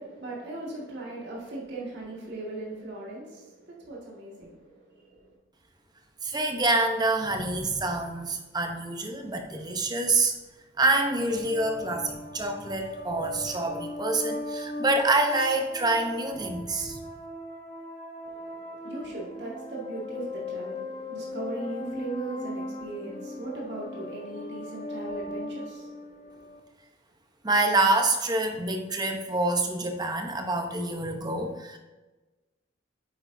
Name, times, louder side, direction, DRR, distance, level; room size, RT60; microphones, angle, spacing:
voice 1, 0.0-5.4 18.2-26.5, right 2 dB, 60° right, 2.0 m, -38 dB
voice 2, 6.2-10.3 10.8-17.0 27.4-31.8, right 2 dB, 20° right, 0.8 m, -26 dB
sound 1, 11.2-26.6, left 2 dB, 35° left, 1.0 m, -39 dB
9.5 x 8.5 x 2.7 m
head